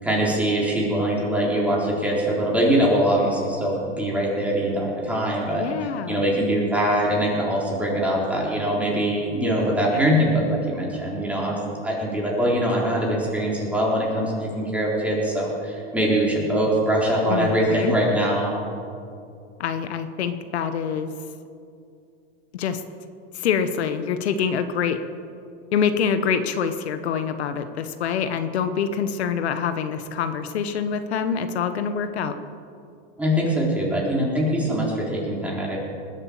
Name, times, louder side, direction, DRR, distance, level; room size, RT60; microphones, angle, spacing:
voice 1, 0.0-5.7 6.1-18.6 33.2-35.8, right 1 dB, 5° right, -4 dB, 4.0 m, -23 dB
voice 2, 5.6-6.2 17.3-17.9 19.6-21.1 22.5-22.8 23.3-25.0 25.7-32.4, left 7 dB, 90° left, 9 dB, 1.2 m, -25 dB
20.0 x 8.3 x 7.1 m, 2.5 s
supercardioid pair, 135°, 32 cm